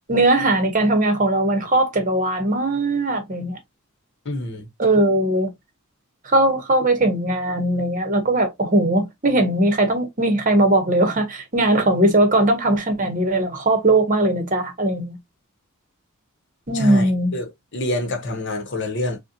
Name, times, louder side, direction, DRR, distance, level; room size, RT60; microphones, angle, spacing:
voice 1, 0.1-3.6 4.8-5.5 6.2-15.2 16.7-17.4, right 1 dB, 35° right, 0.9 m, -19 dB
voice 2, 4.2-4.7 16.7-19.2, left 1 dB, 55° left, 0.9 m, -27 dB
5.4 x 2.2 x 2.7 m
head